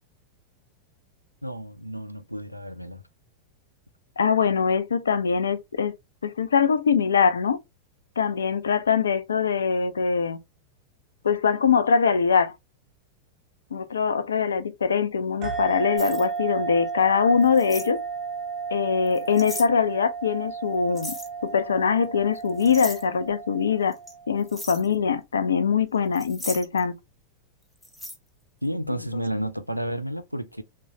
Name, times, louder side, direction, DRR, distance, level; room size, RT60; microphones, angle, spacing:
voice 1, 1.4-3.0 28.6-30.6, equal, 90° right, 0.3 m, -31 dB
voice 2, 4.2-5.9 6.2-7.6 8.2-10.4 11.2-12.5 13.7-18.0 18.7-21.2 21.4-24.0 24.3-27.0 28.9-29.2, left 6 dB, 70° left, 0.3 m, -23 dB
sound 1, 15.4-24.5, right 5 dB, 35° right, 0.6 m, -34 dB
sound 2, 16.0-16.3 17.4-17.9 19.1-19.7 20.9-21.3 22.4-23.0 23.9-24.1 24.5-24.9 26.1-26.8 27.8-28.2, equal, 5° left, 0.6 m, -37 dB
3.0 x 2.1 x 2.8 m
figure-of-eight pair, 90°, 0 cm